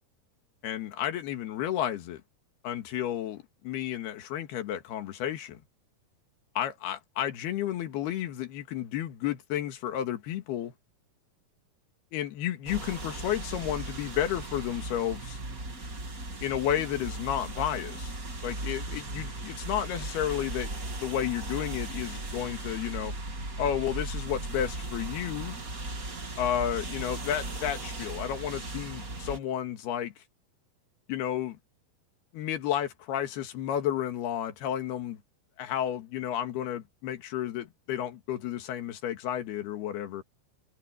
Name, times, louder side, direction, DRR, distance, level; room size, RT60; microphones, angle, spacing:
voice 1, 0.6-2.2 2.6-5.6 6.6-10.7 12.1-15.4 16.4-18.1 18.4-20.7 21.0-23.1 23.6-25.6 26.4-30.1 31.1-31.6 32.3-35.2 35.6-40.2, left 10 dB, 80° left, 3.8 m, -32 dB
sound 1, 12.6-29.4, right 2 dB, 25° right, 2.6 m, -37 dB
omnidirectional pair, 4.5 m